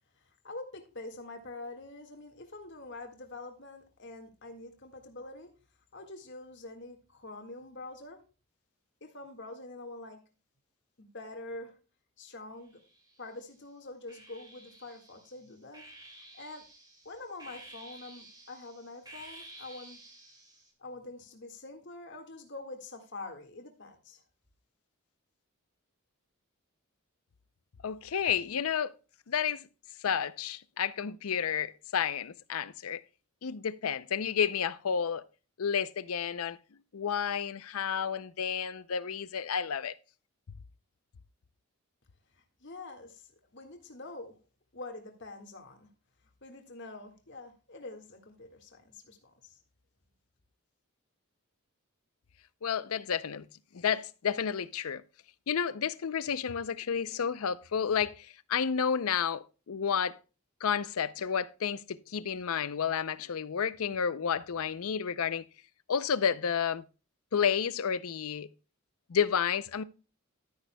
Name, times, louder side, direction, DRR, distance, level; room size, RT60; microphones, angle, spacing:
voice 1, 0.2-5.5 5.9-8.2 9.0-10.2 11.0-11.8 12.2-12.8 13.2-15.8 16.3-16.7 17.1-20.0 20.8-24.2 42.3-44.4 44.7-45.9 46.4-49.6, left 2 dB, 55° left, 1.8 m, -45 dB
sound 1, 12.7-13.4 14.1-20.7, right 1 dB, 20° right, 2.3 m, -52 dB
voice 2, 27.8-28.9 29.3-29.7 30.0-33.0 33.4-35.2 35.6-36.6 36.9-40.0 52.6-53.5 53.7-55.0 55.5-60.2 60.6-65.4 65.9-66.8 67.3-68.5 69.1-69.8, left 7 dB, 80° left, 0.5 m, -31 dB
12.0 x 10.5 x 2.2 m
head